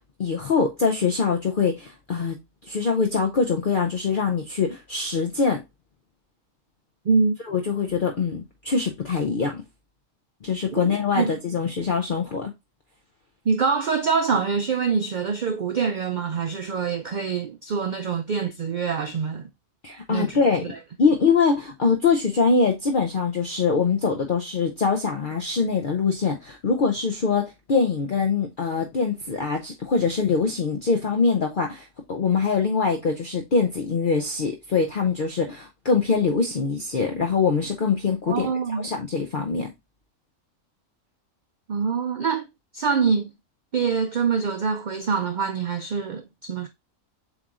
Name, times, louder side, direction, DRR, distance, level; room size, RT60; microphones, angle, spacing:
voice 1, 0.2-2.4 2.7-5.6 7.5-9.6 10.4-12.5 19.8-20.7 21.0-39.7, left 5 dB, 50° left, 0.7 m, -23 dB
voice 2, 7.1-7.4 10.7-11.3 13.5-19.5 20.1-20.4 20.7-20.8 38.3-38.8 41.7-42.5 42.7-43.3 43.7-46.7, right 5 dB, 85° right, 0.4 m, -25 dB
7.2 x 3.1 x 2.4 m
omnidirectional pair, 1.4 m